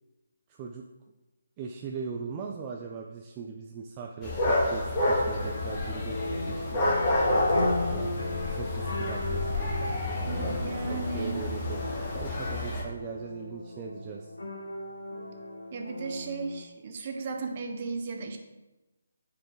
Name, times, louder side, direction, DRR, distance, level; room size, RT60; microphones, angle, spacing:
voice 1, 0.5-0.8 1.6-14.3, right 5 dB, 25° right, 0 dB, 0.5 m, -40 dB
sound 1, 4.2-12.8, left 1 dB, 25° left, 1.9 m, -29 dB
sound 2, 5.4-16.6, left 1 dB, 85° left, 1.3 m, -37 dB
voice 2, 10.3-11.7 15.7-18.4, right 4 dB, 40° right, 4 dB, 1.0 m, -35 dB
8.8 x 4.7 x 3.9 m, 1.1 s
figure-of-eight pair, 155°, 0 cm